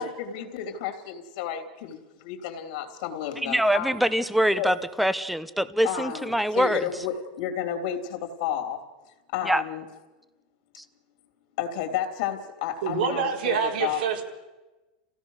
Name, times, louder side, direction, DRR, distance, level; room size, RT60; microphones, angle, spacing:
voice 1, 0.0-3.9 4.6-4.7 5.8-8.8 9.3-9.8 11.6-14.0, left 9 dB, 55° left, 6 dB, 3.2 m, -31 dB
voice 2, 3.4-6.8 9.5-9.6 10.8-10.9, equal, ahead, 14 dB, 0.7 m, -24 dB
voice 3, 12.8-14.2, right 7 dB, 80° right, 0 dB, 4.5 m, -26 dB
29.0 x 16.5 x 6.5 m, 1.1 s
supercardioid pair, 165°, 5 cm